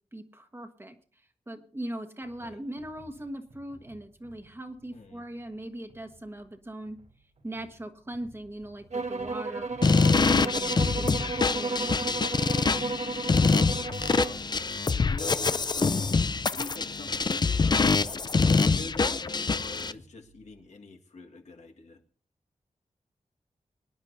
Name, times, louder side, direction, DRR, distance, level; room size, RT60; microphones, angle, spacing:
voice 1, 0.1-0.9 1.5-7.0 7.4-11.3 11.6-12.1, right 1 dB, 20° right, 6 dB, 1.5 m, -40 dB
sound 1, 2.2-20.6, right 1 dB, 85° right, 2.9 m, -55 dB
voice 2, 4.9-5.2 9.5-9.7 13.2-14.5 15.1-16.2 16.6-22.0, left 3 dB, 70° left, 3 dB, 1.9 m, -44 dB
sound 2, 8.9-14.4, right 3 dB, 65° right, 1.3 m, -34 dB
sound 3, 9.8-19.9, left 4 dB, 35° left, 0.5 m, -25 dB
24.0 x 10.5 x 2.7 m, 0.43 s
wide cardioid pair, 110°, 12 cm